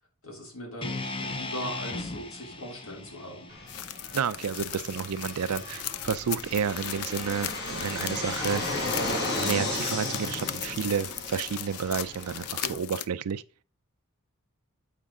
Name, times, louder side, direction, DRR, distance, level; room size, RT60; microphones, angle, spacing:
voice 1, 0.2-3.5 10.4-10.6 12.6-12.8, equal, 65° left, 3.0 m, -40 dB
sound 1, 0.8-5.0, left 2 dB, 25° left, 0.7 m, -38 dB
Fixed-wing aircraft airplane, 3.5-12.7, left 2 dB, 50° left, 1.9 m, -35 dB
sound 2, 3.7-13.1, left 12 dB, 85° left, 0.5 m, -38 dB
voice 2, 4.1-8.8 9.4-13.4, right 7 dB, 85° right, 0.4 m, -31 dB
8.5 x 5.1 x 3.6 m
head